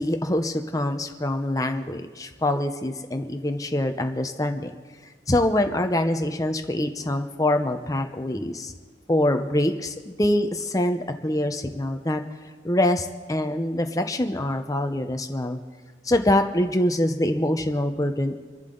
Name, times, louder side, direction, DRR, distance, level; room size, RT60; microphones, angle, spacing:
voice 1, 0.0-4.7 5.3-8.7 9.1-12.2 12.6-15.6 16.0-18.4, left 1 dB, 20° left, 6 dB, 0.7 m, -24 dB
27.5 x 11.5 x 3.9 m, 1.5 s
head